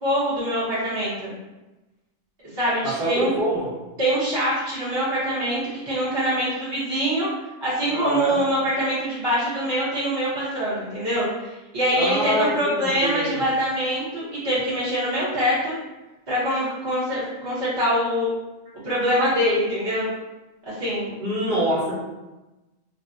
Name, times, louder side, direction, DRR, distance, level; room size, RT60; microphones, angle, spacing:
voice 1, 0.0-1.3 2.5-3.3 4.0-7.3 7.6-15.8 16.3-18.3 18.8-20.1 20.7-21.2, equal, 20° right, -11 dB, 0.9 m, -24 dB
voice 2, 2.8-3.7 7.9-8.4 11.9-13.3 21.2-22.0, equal, 40° right, -7 dB, 1.1 m, -25 dB
3.3 x 2.4 x 2.7 m, 1.1 s
omnidirectional pair, 1.7 m